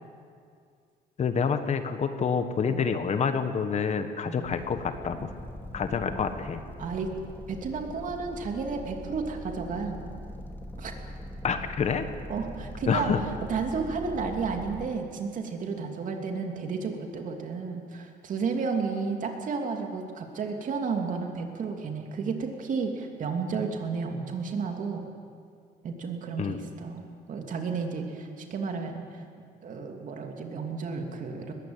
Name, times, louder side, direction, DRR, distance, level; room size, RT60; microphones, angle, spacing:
voice 1, 1.2-5.3 5.7-6.6 11.4-12.0 12.9-13.2 26.4-26.6, left 6 dB, 40° left, 9 dB, 1.4 m, -27 dB
sound 1, 4.4-14.9, equal, 10° left, 2.4 m, -41 dB
voice 2, 6.8-7.1 7.5-10.0 10.8-10.9 12.3-13.1 13.5-25.1 25.8-29.2 29.6-31.5, right 5 dB, 50° right, 3 dB, 2.9 m, -32 dB
20.5 x 15.5 x 9.0 m, 2.2 s
cardioid pair, 110°, 17 cm